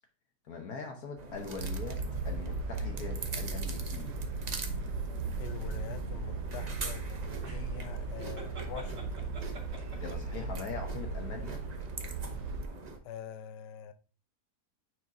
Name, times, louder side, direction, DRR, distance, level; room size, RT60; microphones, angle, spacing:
voice 1, 0.5-4.1 9.9-11.6, left 4 dB, 65° left, 1.4 m, -41 dB
sound 1, 1.2-13.0, right 3 dB, 45° right, 0.5 m, -43 dB
sound 2, 1.6-12.7, right 4 dB, 70° right, 1.3 m, -37 dB
voice 2, 5.4-9.1 13.0-13.9, left 8 dB, 85° left, 1.3 m, -44 dB
sound 3, 7.4-10.3, right 3 dB, 90° right, 2.6 m, -47 dB
9.3 x 4.8 x 2.6 m
omnidirectional pair, 1.8 m